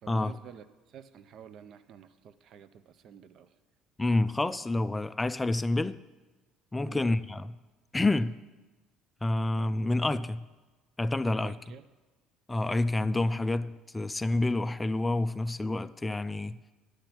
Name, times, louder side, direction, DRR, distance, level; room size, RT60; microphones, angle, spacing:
voice 1, 0.0-3.5 6.8-7.0 11.4-11.8, right 8 dB, 50° right, 0.6 m, -50 dB
voice 2, 4.0-6.0 6.7-7.5 7.9-8.4 9.2-10.5 11.0-11.6 12.5-16.6, left 2 dB, 10° left, 0.3 m, -28 dB
10.0 x 7.9 x 5.9 m
cardioid pair, 140°, 0 cm